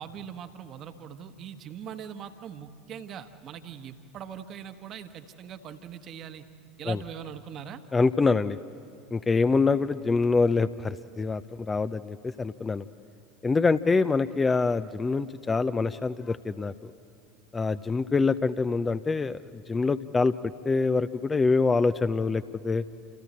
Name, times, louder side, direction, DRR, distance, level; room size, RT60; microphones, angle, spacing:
voice 1, 0.0-6.4 6.8-7.8, right 8 dB, 40° right, 8 dB, 1.4 m, -41 dB
voice 2, 7.9-8.6 9.1-12.8 13.4-16.9 17.5-20.3 20.6-22.8, left 4 dB, 20° left, 12 dB, 0.6 m, -25 dB
29.0 x 27.5 x 4.3 m, 2.5 s
figure-of-eight pair, 75°, 0 cm